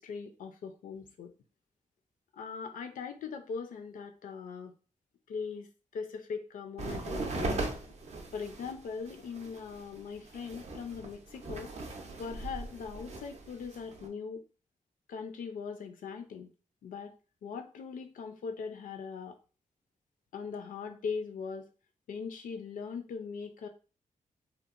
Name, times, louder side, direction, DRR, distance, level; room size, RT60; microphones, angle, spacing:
voice 1, 0.0-1.3 2.3-4.7 5.3-5.7 5.9-7.6 8.3-11.7 12.2-14.4 15.1-16.5 16.8-17.1 17.4-19.4 20.3-21.6 22.1-23.7, left 5 dB, 75° left, 6 dB, 0.4 m, -40 dB
sound 1, 6.8-14.1, right 2 dB, 55° right, 0.4 m, -39 dB
2.8 x 2.0 x 2.3 m, 0.36 s
wide cardioid pair, 125°, 14 cm